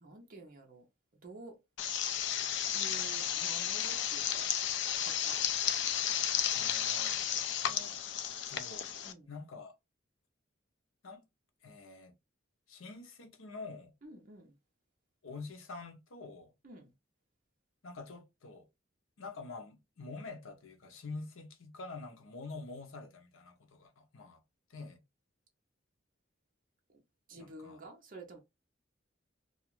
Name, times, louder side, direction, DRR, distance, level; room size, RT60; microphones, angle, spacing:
voice 1, 0.0-0.8 1.2-1.6 2.7-4.5 5.0-5.4 9.0-9.3 14.0-14.5 16.6-16.9 26.9-27.0 27.3-28.4, right 2 dB, 45° right, 0.6 m, -50 dB
sound 1, 1.8-9.1, left 10 dB, 60° left, 0.4 m, -33 dB
voice 2, 6.5-7.9 8.5-8.9 9.3-9.7 11.0-11.3 11.6-12.1 12.7-13.9 15.2-16.5 17.8-18.7 19.2-24.4 24.7-25.0 27.4-27.8, left 3 dB, 90° left, 0.8 m, -47 dB
2.4 x 2.4 x 3.0 m
head